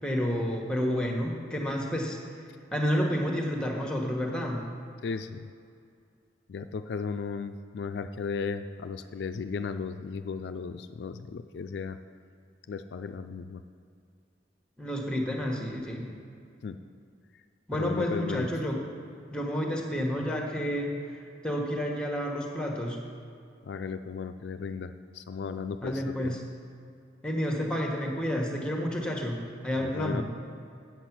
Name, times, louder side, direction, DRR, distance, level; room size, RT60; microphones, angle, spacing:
voice 1, 0.0-2.2 2.7-4.6 14.8-16.1 17.7-18.8 19.3-21.2 21.4-23.0 25.8-26.4 27.2-29.4 29.6-30.2, equal, 5° left, 1 dB, 1.1 m, -30 dB
voice 2, 5.0-5.5 6.5-12.0 12.7-13.6 16.6-16.8 17.8-18.5 23.6-26.3 29.8-30.2, left 5 dB, 70° left, 9 dB, 0.3 m, -35 dB
8.2 x 7.9 x 6.0 m, 2.4 s
head